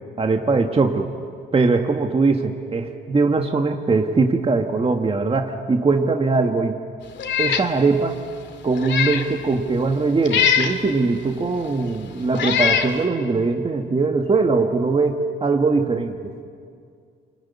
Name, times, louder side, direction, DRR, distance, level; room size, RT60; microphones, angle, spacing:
voice 1, 0.2-1.1 1.5-6.8 7.4-8.2 8.6-16.3, right 3 dB, 30° right, 4 dB, 1.6 m, -21 dB
Meow, 7.2-7.7 8.1-8.2 8.7-9.3 10.3-10.8 11.6-11.7 12.3-12.9, left 8 dB, 65° left, 2.4 m, -21 dB
29.0 x 21.0 x 9.6 m, 2.3 s
cardioid pair, 90°, 20 cm